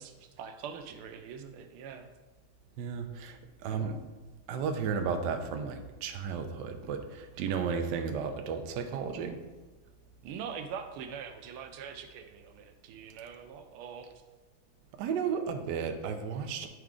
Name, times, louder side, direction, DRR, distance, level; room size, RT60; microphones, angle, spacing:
voice 1, 0.0-2.1 3.7-4.0 10.2-14.1, right 7 dB, 85° right, 7 dB, 1.5 m, -43 dB
voice 2, 2.8-3.9 4.5-9.3 15.0-16.7, right 6 dB, 70° right, 5 dB, 1.1 m, -33 dB
8.6 x 4.7 x 3.7 m, 1.3 s
omnidirectional pair, 2.3 m